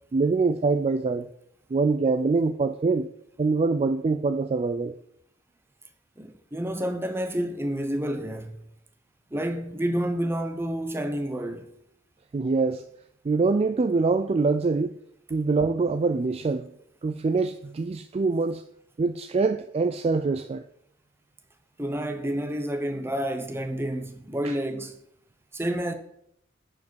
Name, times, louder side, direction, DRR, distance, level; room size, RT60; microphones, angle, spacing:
voice 1, 0.1-1.3 1.7-3.1 3.4-4.9 12.3-12.8 13.2-14.9 15.3-16.7 17.0-18.6 19.0-20.6 24.4-24.6, right 4 dB, 30° right, 0.3 m, -24 dB
voice 2, 6.2-8.6 9.3-11.7 21.8-24.9 25.5-25.9, equal, 10° right, 0.8 m, -29 dB
10.5 x 5.2 x 4.6 m
head